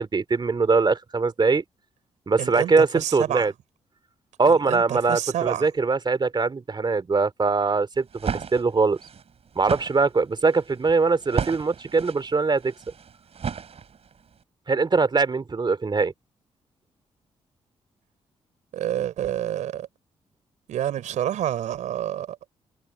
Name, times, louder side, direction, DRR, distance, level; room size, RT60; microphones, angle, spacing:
voice 1, 0.0-1.6 2.3-3.5 4.4-8.1 8.3-9.0 9.5-12.7 14.7-16.1, right 4 dB, 40° right, 3.1 m, -22 dB
voice 2, 2.4-3.5 4.5-5.7 18.7-19.9 20.7-22.4, right 11 dB, 80° right, 5.8 m, -28 dB
sound 1, 7.9-14.2, right 6 dB, 55° right, 5.2 m, -34 dB
supercardioid pair, 60°, 12 cm